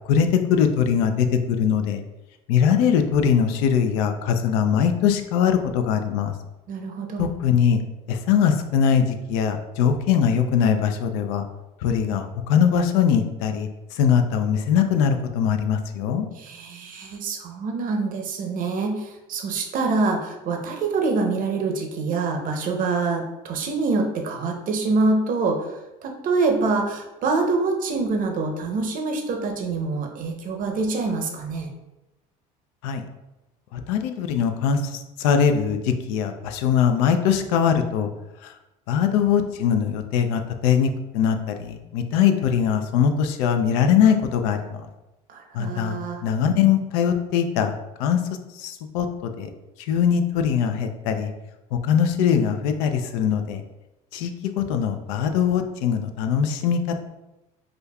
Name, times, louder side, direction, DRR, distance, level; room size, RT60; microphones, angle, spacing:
voice 1, 0.1-2.0 2.5-6.3 7.2-7.8 8.1-11.4 11.8-16.3 32.8-33.0 33.7-38.1 38.4-38.5 38.9-44.6 45.5-47.7 48.0-48.2 48.6-49.5 49.9-51.3 51.7-53.6 54.1-57.0, left 7 dB, 75° left, 6 dB, 0.4 m, -21 dB
voice 2, 6.7-7.3 16.3-31.7 45.3-46.2, right 3 dB, 45° right, 3 dB, 0.7 m, -25 dB
5.0 x 2.2 x 2.3 m, 0.98 s
hypercardioid pair, 80°, 19 cm